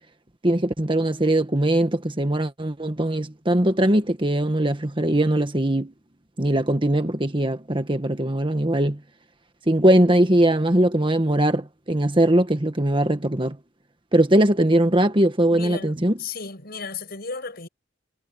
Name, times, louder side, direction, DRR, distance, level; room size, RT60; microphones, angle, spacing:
voice 1, 0.4-5.9 6.4-9.0 9.7-13.6 14.1-16.1, right 1 dB, 25° right, 1.5 m, -20 dB
voice 2, 15.5-17.7, left 4 dB, 55° left, 6.7 m, -34 dB
head